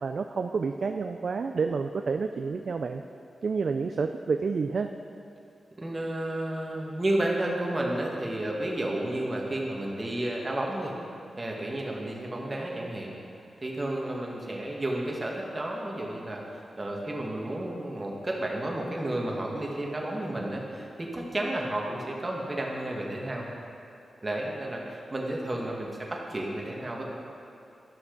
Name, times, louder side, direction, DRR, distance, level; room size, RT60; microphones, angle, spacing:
voice 1, 0.0-3.0 3.4-4.9, right 5 dB, 65° right, 6 dB, 0.3 m, -29 dB
voice 2, 5.8-10.9 11.4-13.1 13.6-16.4 16.8-23.5 24.2-27.0, right 1 dB, 30° right, -2 dB, 1.6 m, -32 dB
12.0 x 6.1 x 3.9 m, 2.6 s
cardioid pair, 70°, 0 cm